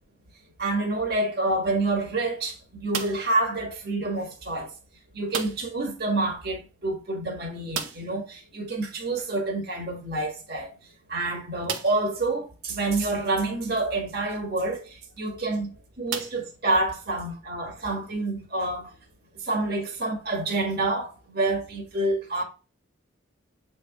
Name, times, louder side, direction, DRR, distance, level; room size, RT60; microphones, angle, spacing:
voice 1, 0.6-4.7 5.1-10.7 11.1-18.9 19.3-22.4, right 2 dB, 50° right, 1.6 m, -28 dB
sound 1, 2.9-3.4 5.3-5.8 6.1-6.2 6.5-6.6 7.7-8.3 10.0-10.1 10.7-10.8 11.6-12.1 12.9-13.0 15.0-15.2 16.1-17.0, right 6 dB, 75° right, 0.9 m, -34 dB
8.0 x 3.4 x 3.6 m
head